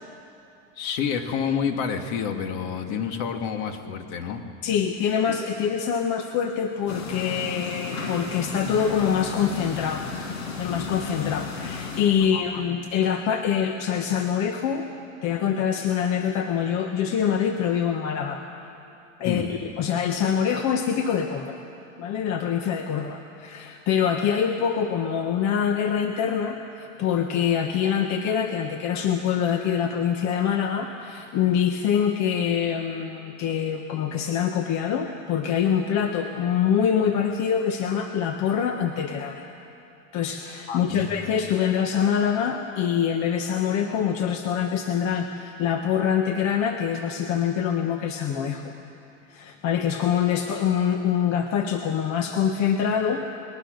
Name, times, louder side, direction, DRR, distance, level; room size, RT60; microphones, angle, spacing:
voice 1, 0.8-4.5 12.2-12.6 19.2-19.5 40.7-41.1, left 7 dB, 60° left, 5 dB, 2.5 m, -29 dB
voice 2, 4.6-10.1 10.6-14.9 15.2-18.4 19.2-21.6 22.0-39.4 40.1-48.7 49.3-53.2, left 8 dB, 40° left, 5 dB, 1.4 m, -25 dB
sound 1, 6.9-12.0, left 4 dB, 80° left, 5.3 m, -34 dB
29.0 x 21.0 x 6.7 m, 2.7 s
supercardioid pair, 125°, 40 cm